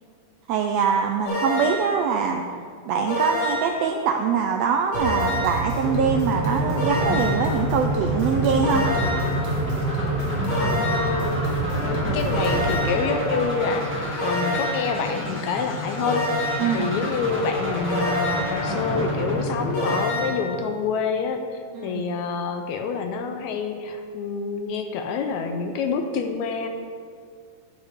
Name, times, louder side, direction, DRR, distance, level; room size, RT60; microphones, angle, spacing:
voice 1, 0.5-2.4 2.9-8.9 16.6-16.9 21.7-22.0, right 6 dB, 85° right, 4 dB, 1.4 m, -23 dB
sound 1, 1.2-2.0 3.1-3.8 4.9-5.7 6.8-7.5 8.6-9.4 10.5-11.2 12.3-13.1 14.2-14.9 16.0-16.8 17.9-18.6 19.7-20.5, left 1 dB, 50° left, 3.4 m, -27 dB
sound 2, 4.9-12.9, right 3 dB, 65° right, 2.7 m, -30 dB
sound 3, 5.8-20.8, equal, 5° right, 1.1 m, -28 dB
voice 2, 10.6-11.3 11.8-13.9 14.2-16.3 16.7-21.4 21.8-26.7, left 5 dB, 75° left, 5 dB, 2.0 m, -27 dB
10.5 x 9.9 x 3.7 m, 2.1 s
omnidirectional pair, 3.5 m